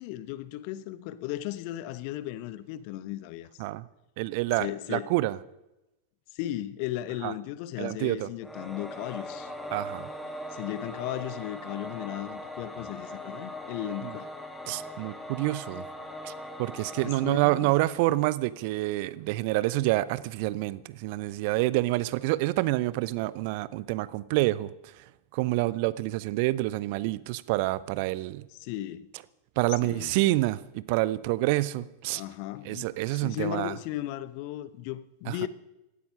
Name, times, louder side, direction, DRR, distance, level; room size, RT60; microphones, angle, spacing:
voice 1, 0.0-3.5 4.6-5.1 6.3-9.5 10.5-14.3 17.0-17.7 28.5-29.1 29.8-30.1 32.1-35.5, left 14 dB, 45° left, 0.9 m, -36 dB
voice 2, 4.2-5.4 7.2-7.3 7.8-8.3 9.7-10.1 14.7-15.8 16.2-16.3 16.6-24.7 25.3-28.4 29.6-32.2 32.6-33.7 35.3-35.4, right 18 dB, 45° right, 0.6 m, -27 dB
Singing / Musical instrument, 8.4-18.4, left 1 dB, 5° left, 2.0 m, -40 dB
17.0 x 13.0 x 5.7 m
figure-of-eight pair, 90°, 0 cm